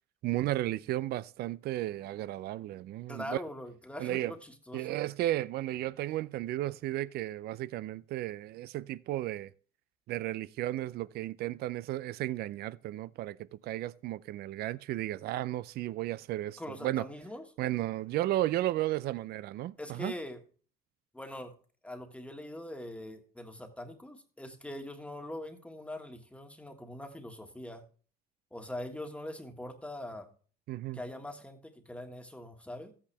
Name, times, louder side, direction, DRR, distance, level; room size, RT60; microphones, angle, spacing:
voice 1, 0.2-3.4 4.0-4.3 4.7-9.5 10.1-17.0 17.6-20.1 30.7-31.0, right 15 dB, 70° right, 0.5 m, -34 dB
voice 2, 3.1-4.9 16.6-17.5 19.8-20.4 21.1-21.5 21.8-27.8 28.5-30.3 30.9-32.9, left 1 dB, 5° left, 1.6 m, -42 dB
13.5 x 8.7 x 3.4 m
cardioid pair, 110°, 17 cm